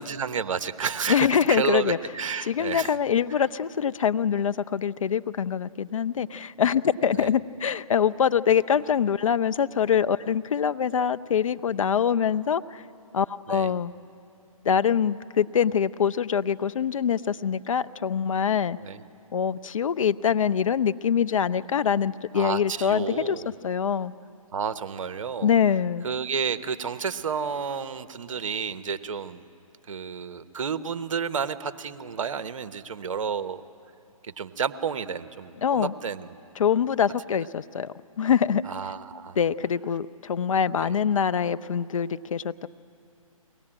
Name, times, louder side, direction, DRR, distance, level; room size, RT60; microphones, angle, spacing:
voice 1, 0.0-3.0 3.3-3.4 7.1-7.3 13.5-13.7 18.8-19.0 22.3-23.5 24.5-25.5 26.0-29.4 29.9-33.6 34.2-36.4 38.7-39.4 40.8-40.9, right 6 dB, 60° right, 12 dB, 0.9 m, -31 dB
voice 2, 1.1-2.0 2.4-12.8 13.1-13.9 14.6-18.8 19.3-24.1 25.4-26.1 35.6-35.9 36.6-38.6 39.4-42.7, left 7 dB, 65° left, 15 dB, 0.6 m, -24 dB
23.0 x 18.0 x 8.8 m, 2.7 s
hypercardioid pair, 150°, 18 cm